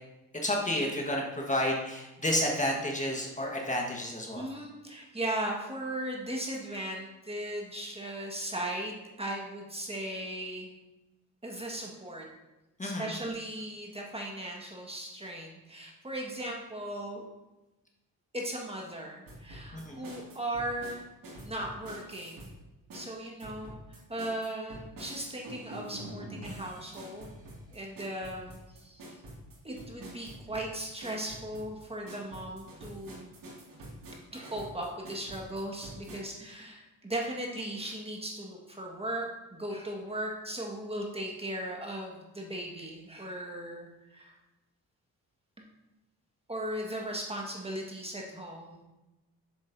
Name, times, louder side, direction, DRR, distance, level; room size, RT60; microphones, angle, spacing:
voice 1, 0.4-4.5 12.8-13.1 19.7-20.0, left 1 dB, 20° left, -1 dB, 1.5 m, -30 dB
voice 2, 4.3-10.7 11.4-12.3 12.8-17.2 18.3-21.1 21.4-22.5 22.9-27.3 27.7-29.0 29.6-33.3 34.3-44.3 46.5-48.8, right 1 dB, 15° right, -1 dB, 1.6 m, -37 dB
sound 1, 19.3-22.5 22.9-36.2, right 1 dB, 65° right, 2.3 m, -46 dB
7.2 x 7.0 x 2.7 m, 1.0 s
cardioid pair, 70°, 36 cm